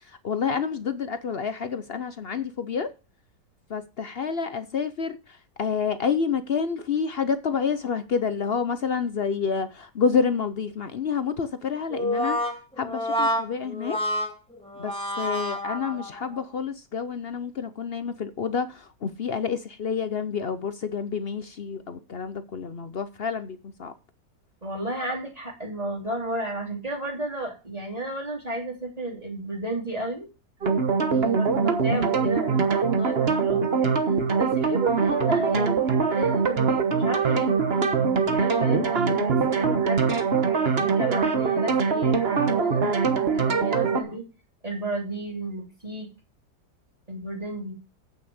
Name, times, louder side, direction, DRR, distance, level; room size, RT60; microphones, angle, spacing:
voice 1, 0.2-2.9 3.7-5.2 5.6-12.4 12.8-14.0 14.8-23.9 31.1-31.4, left 6 dB, 55° left, 0.6 m, -28 dB
Brass instrument, 11.9-16.4, equal, 5° left, 1.7 m, -28 dB
voice 2, 24.6-30.3 31.3-37.7 38.0-40.2 40.7-44.3 44.6-46.1 47.1-47.7, right 1 dB, 20° right, 3.2 m, -33 dB
sound 1, 30.6-44.0, right 5 dB, 40° right, 1.3 m, -23 dB
8.7 x 6.8 x 6.4 m
omnidirectional pair, 1.8 m